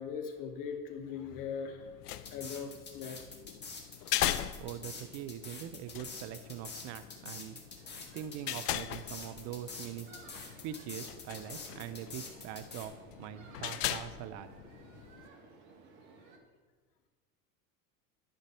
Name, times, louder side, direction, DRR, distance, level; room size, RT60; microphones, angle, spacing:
voice 1, 0.0-1.9 2.3-3.6, left 6 dB, 45° left, 5 dB, 1.1 m, -40 dB
sound 1, 1.8-15.3, left 13 dB, 75° left, 0.6 m, -40 dB
sound 2, 2.1-12.9, left 4 dB, 20° left, 1.8 m, -45 dB
voice 2, 4.6-7.6 8.1-10.1 10.6-14.5, right 11 dB, 40° right, 12 dB, 0.4 m, -43 dB
sound 3, 7.7-16.4, right 3 dB, 60° right, 1.6 m, -57 dB
11.5 x 3.9 x 5.6 m, 1.4 s
hypercardioid pair, 90°, 46 cm